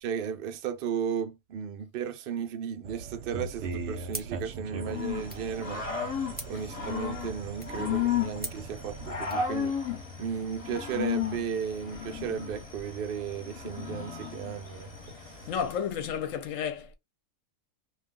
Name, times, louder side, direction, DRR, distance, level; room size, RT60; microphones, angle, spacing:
voice 1, 0.0-5.8 6.5-9.7 10.2-14.9 15.3-15.5, right 7 dB, 85° right, 0.4 m, -35 dB
sound 1, 2.8-9.3, right 4 dB, 60° right, 0.8 m, -40 dB
sound 2, 4.1-9.5, right 1 dB, 10° right, 0.5 m, -46 dB
Growling / Cricket, 4.9-15.8, left 7 dB, 30° left, 0.8 m, -34 dB
voice 2, 15.5-17.0, left 7 dB, 65° left, 0.9 m, -32 dB
2.3 x 2.3 x 3.5 m
omnidirectional pair, 1.6 m